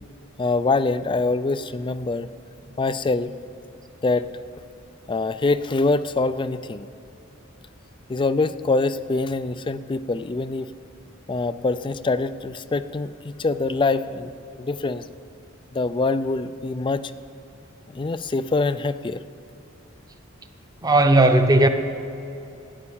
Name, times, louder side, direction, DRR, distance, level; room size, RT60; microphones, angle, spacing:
voice 1, 0.4-2.3 2.8-3.3 4.0-4.3 5.1-6.9 8.1-10.7 11.3-14.3 14.6-15.1 15.7-17.1 17.9-19.2, left 3 dB, 25° left, 14 dB, 0.3 m, -24 dB
voice 2, 20.8-21.7, right 2 dB, 20° right, 6 dB, 0.8 m, -16 dB
13.0 x 9.8 x 7.1 m, 2.9 s
head